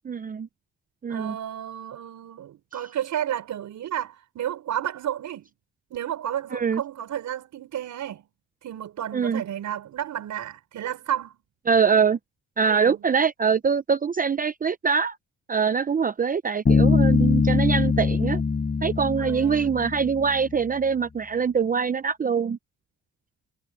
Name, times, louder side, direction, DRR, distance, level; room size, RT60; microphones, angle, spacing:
voice 1, 0.0-0.5 1.0-1.4 6.5-6.8 9.1-9.4 11.7-12.2 12.6-15.2 15.5-18.4 18.8-22.6, right 6 dB, 30° right, 0.7 m, -23 dB
voice 2, 1.1-5.5 5.9-8.3 8.6-11.4 12.6-13.1 19.2-19.8, right 10 dB, 75° right, 5.5 m, -32 dB
Bass guitar, 16.7-20.4, left 4 dB, 30° left, 6.0 m, -22 dB
cardioid pair, 90°, 30 cm